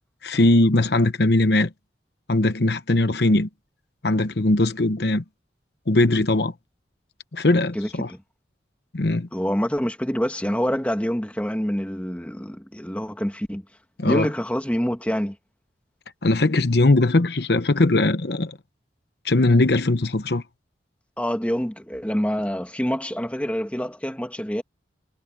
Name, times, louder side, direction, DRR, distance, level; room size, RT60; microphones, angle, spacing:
voice 1, 0.2-1.7 2.3-3.5 4.0-5.2 5.9-6.5 7.3-8.1 8.9-9.3 14.0-14.3 16.2-18.6 19.2-20.4, left 2 dB, 65° left, 0.9 m, -20 dB
voice 2, 7.7-8.2 9.3-13.6 14.0-15.3 21.2-24.6, equal, 5° left, 1.6 m, -26 dB
head